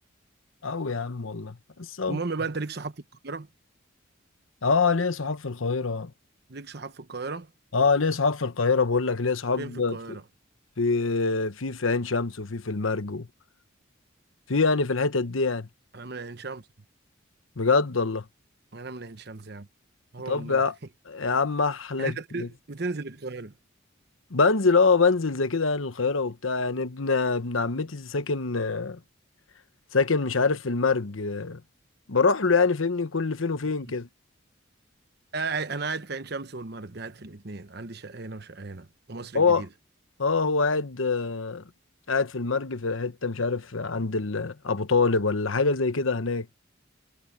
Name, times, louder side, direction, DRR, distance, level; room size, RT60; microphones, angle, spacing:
voice 1, 0.6-2.2 4.6-6.1 7.7-10.0 10.8-13.3 14.5-15.7 17.6-18.2 20.3-20.7 21.1-22.5 24.3-29.0 29.9-31.6 32.1-34.1 39.3-39.6 40.2-41.6 42.1-46.5, left 4 dB, 85° left, 1.1 m, -25 dB
voice 2, 2.1-3.5 6.5-7.5 9.6-10.2 15.9-16.6 18.7-19.7 20.1-20.6 22.0-23.5 33.8-34.0 35.3-39.7, right 3 dB, 55° right, 1.0 m, -35 dB
head